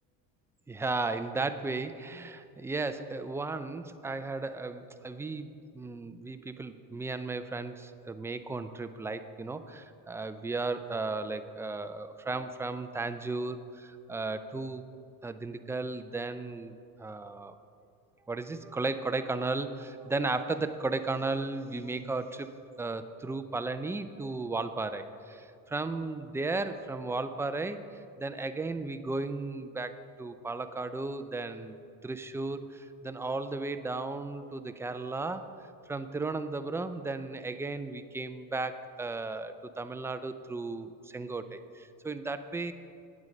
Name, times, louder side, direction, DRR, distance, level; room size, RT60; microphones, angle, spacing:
voice 1, 0.7-14.9 15.2-17.5 18.3-22.5 22.8-27.8 28.2-31.7 32.0-35.5 35.9-42.7, right 3 dB, 5° right, 10 dB, 0.4 m, -35 dB
9.6 x 8.6 x 5.2 m, 2.5 s
supercardioid pair, 110°, 38 cm